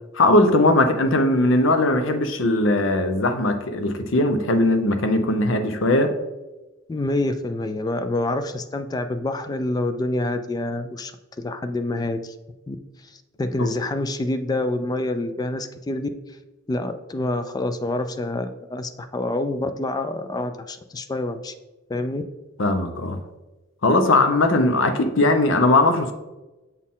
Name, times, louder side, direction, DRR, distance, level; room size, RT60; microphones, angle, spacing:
voice 1, 0.1-6.1 13.6-13.7 22.6-23.2 23.8-26.1, left 2 dB, 80° left, 7 dB, 0.7 m, -19 dB
voice 2, 6.9-12.4 12.7-16.4 16.7-21.5 21.9-22.2, left 2 dB, 20° left, 9 dB, 0.3 m, -27 dB
7.0 x 4.2 x 3.7 m, 1.1 s
head